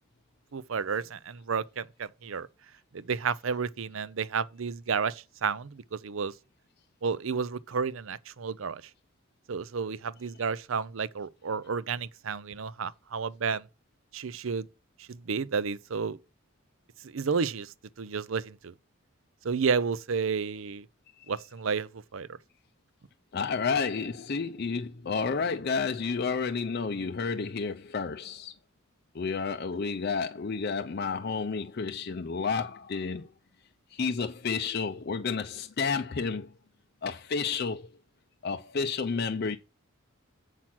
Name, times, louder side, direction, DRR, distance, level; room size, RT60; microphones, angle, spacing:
voice 1, 0.5-2.5 2.9-6.3 7.0-8.8 9.5-13.7 14.1-14.7 15.0-16.2 17.0-18.7 19.4-20.9 21.3-22.3, right 5 dB, 70° right, 0.6 m, -31 dB
voice 2, 23.3-28.5 29.1-33.3 33.9-36.5 37.0-37.9 38.4-39.6, left 5 dB, 50° left, 0.5 m, -31 dB
7.4 x 5.9 x 6.0 m
head